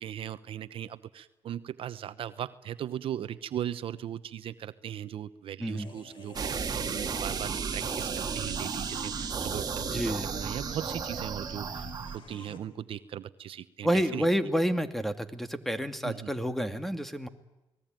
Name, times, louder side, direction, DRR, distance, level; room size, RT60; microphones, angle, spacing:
voice 1, 0.0-11.8 12.1-14.3 16.0-16.3, right 10 dB, 70° right, 13 dB, 0.9 m, -38 dB
sound 1, 5.7-12.6, left 4 dB, 60° left, 5.2 m, -49 dB
sound 2, 6.3-12.2, right 6 dB, 45° right, 2.0 m, -33 dB
voice 2, 9.9-10.3 13.8-17.3, equal, 5° left, 8 dB, 2.3 m, -29 dB
28.5 x 20.0 x 9.1 m, 0.98 s
cardioid pair, 80°, 10 cm